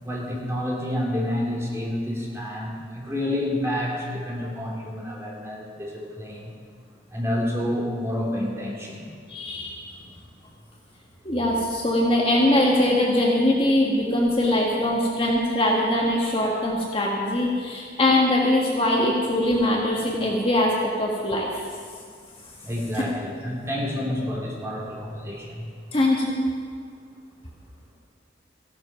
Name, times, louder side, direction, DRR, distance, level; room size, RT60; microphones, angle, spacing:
voice 1, 0.0-6.5 7.1-9.1 22.6-25.7, left 1 dB, 15° right, -3 dB, 2.9 m, -29 dB
voice 2, 9.3-9.8 11.3-21.6 23.0-23.1 25.9-26.4, left 1 dB, 30° left, -2 dB, 1.6 m, -22 dB
15.0 x 12.0 x 5.9 m, 2.1 s
head